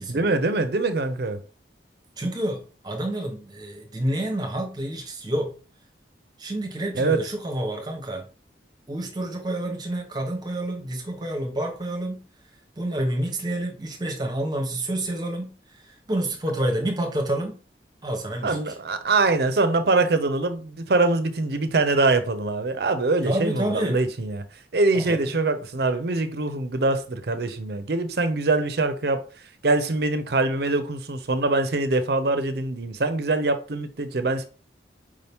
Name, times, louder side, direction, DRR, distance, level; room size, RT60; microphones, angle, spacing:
voice 1, 0.1-1.4 6.9-7.2 18.4-24.4 24.7-29.2 29.6-34.5, right 3 dB, 60° right, 0.6 m, -23 dB
voice 2, 2.2-5.5 6.4-8.2 8.9-12.2 12.8-17.6 18.0-18.7 23.2-24.0 24.9-25.3, right 1 dB, 25° right, 0.9 m, -29 dB
4.9 x 2.8 x 3.4 m
head